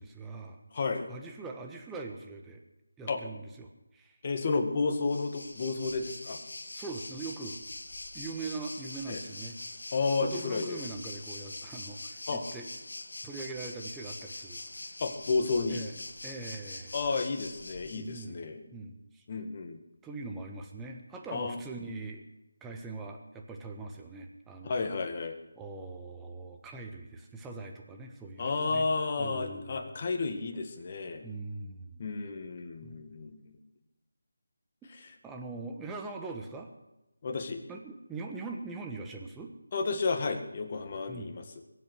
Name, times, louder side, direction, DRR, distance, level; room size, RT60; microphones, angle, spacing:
voice 1, 0.0-0.6 1.1-2.6 3.0-4.2 6.7-7.6 8.1-9.6 10.2-12.7 13.2-14.6 15.7-15.9 16.2-16.9 17.8-19.2 20.0-22.2 22.6-24.8 25.6-28.9 29.2-29.9 31.2-32.0 32.8-33.1 35.2-36.7 37.7-39.5 41.1-41.4, right 3 dB, 5° right, 2 dB, 1.3 m, -42 dB
voice 2, 0.7-1.1 3.1-3.2 4.2-6.4 9.1-9.2 9.9-10.8 12.3-12.4 15.0-15.8 16.9-18.6 19.3-19.8 21.3-21.6 24.7-25.4 28.4-31.3 32.0-33.6 35.0-35.1 37.2-37.6 39.7-41.4, left 4 dB, 35° left, 4 dB, 1.9 m, -31 dB
Waves surf, 4.9-18.2, left 2 dB, 75° left, 1.7 m, -43 dB
22.5 x 8.1 x 6.4 m, 0.98 s
figure-of-eight pair, 165°, 0 cm